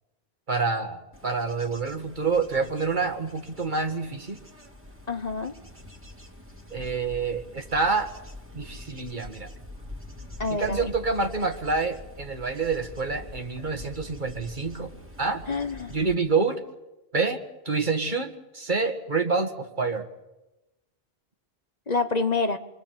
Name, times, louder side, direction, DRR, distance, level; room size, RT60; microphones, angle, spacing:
voice 1, 0.5-4.4 6.7-8.1 8.5-9.5 10.5-14.9 15.2-15.4 15.9-16.6 17.1-20.1, right 4 dB, 50° right, 5 dB, 1.9 m, -27 dB
Bird / Insect / Wind, 1.1-16.1, left 2 dB, 10° right, 2.3 m, -45 dB
voice 2, 5.1-5.5 10.4-10.9 15.5-15.9 21.9-22.6, left 3 dB, 40° left, 8 dB, 1.2 m, -27 dB
28.5 x 22.5 x 7.5 m, 1.0 s
omnidirectional pair, 1.1 m